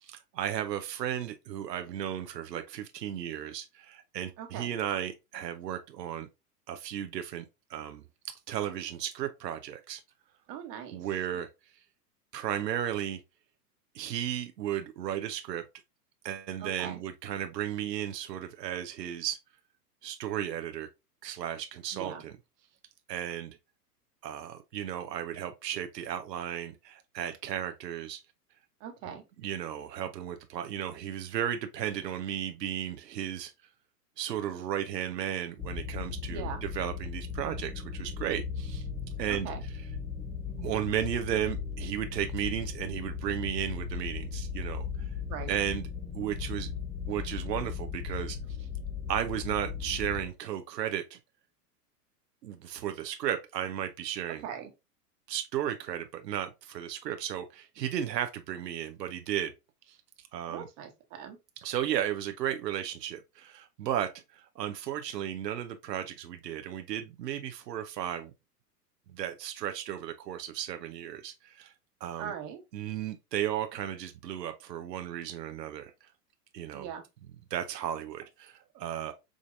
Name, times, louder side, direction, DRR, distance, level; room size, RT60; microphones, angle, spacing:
voice 1, 0.0-6.3 6.7-7.5 7.7-10.0 10.9-11.5 12.3-13.2 13.9-15.6 16.2-19.4 20.0-20.9 21.2-22.3 23.1-23.6 24.2-28.2 29.4-33.5 34.2-38.8 39.2-39.5 40.2-44.9 45.5-45.8 46.1-46.7 47.1-48.4 49.1-51.2 52.4-54.4 55.3-59.5 59.9-60.0 60.3-60.7 61.6-68.3 69.1-71.7 72.0-72.3 72.7-75.9 76.5-76.9 77.5-79.1, right 10 dB, 90° right, 0.6 m, -34 dB
voice 2, 4.4-4.7 10.5-11.1 16.6-17.0 21.9-22.3 28.8-29.2 36.3-36.6 39.3-39.6 45.2-45.6 54.4-54.7 60.5-61.4 72.2-72.6 76.7-77.0, right 8 dB, 40° right, 1.0 m, -40 dB
sound 1, 35.6-50.3, left 6 dB, 5° left, 0.6 m, -37 dB
4.9 x 2.6 x 2.4 m
hypercardioid pair, 110°, 48 cm